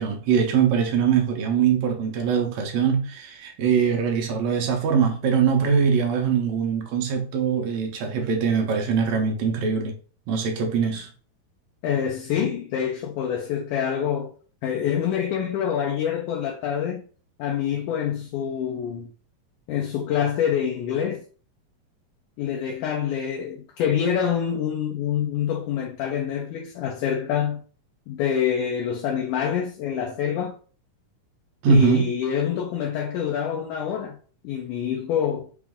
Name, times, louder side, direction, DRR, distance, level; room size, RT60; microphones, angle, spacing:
voice 1, 0.0-10.0 10.3-11.1 31.6-32.1, right 6 dB, 70° right, 1.8 m, -22 dB
voice 2, 11.8-14.3 14.6-17.1 17.4-19.1 19.7-21.2 22.4-27.6 28.1-30.6 31.7-34.2 34.4-35.5, left 8 dB, 75° left, 2.0 m, -26 dB
5.9 x 2.5 x 3.5 m
omnidirectional pair, 3.9 m